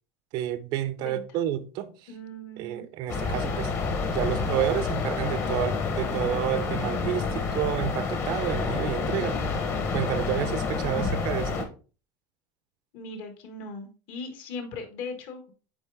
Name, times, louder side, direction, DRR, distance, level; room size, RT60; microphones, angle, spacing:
voice 1, 0.3-2.1 2.6-3.7 4.1-9.4 9.9-11.7, right 11 dB, 55° right, 0.7 m, -30 dB
voice 2, 2.1-2.9 12.9-15.5, left 3 dB, 55° left, 1.8 m, -39 dB
sound 1, 3.1-11.6, left 4 dB, 30° left, 1.2 m, -29 dB
9.0 x 3.5 x 3.5 m
supercardioid pair, 145°, 9 cm